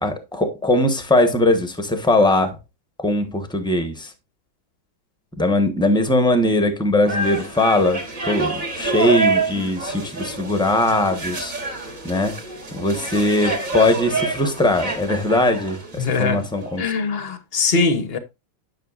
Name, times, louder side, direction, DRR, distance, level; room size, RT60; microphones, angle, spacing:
voice 1, 0.0-2.6 3.0-4.1 5.4-11.5 12.0-12.4 12.7-16.9, left 1 dB, 5° left, 0.8 m, -20 dB
sound 1, 7.1-16.8, right 3 dB, 45° right, 2.8 m, -27 dB
voice 2, 16.0-16.4 16.8-18.2, left 4 dB, 45° left, 0.8 m, -21 dB
10.5 x 6.4 x 2.5 m
omnidirectional pair, 2.1 m